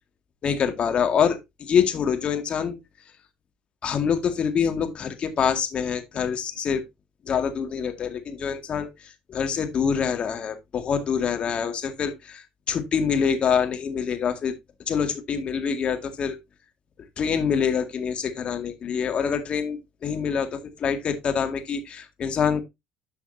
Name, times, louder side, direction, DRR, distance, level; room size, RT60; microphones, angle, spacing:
voice 1, 0.4-2.8 3.8-6.8 7.3-14.5 14.9-16.4 17.2-22.6, left 7 dB, 45° left, 2.1 m, -25 dB
11.5 x 5.7 x 2.7 m
hypercardioid pair, 65°, 3 cm